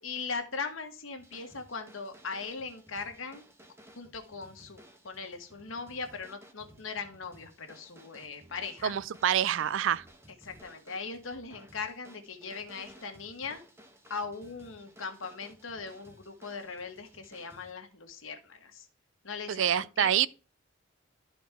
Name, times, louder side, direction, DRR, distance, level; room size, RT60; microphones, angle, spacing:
voice 1, 0.0-3.4 3.9-8.9 10.4-13.6 14.1-18.9 19.2-20.2, left 4 dB, 75° left, 1.4 m, -39 dB
sound 1, 1.2-17.7, equal, 15° right, 1.0 m, -57 dB
voice 2, 8.8-10.0 19.5-20.3, right 10 dB, 65° right, 0.4 m, -26 dB
12.0 x 4.3 x 3.4 m
head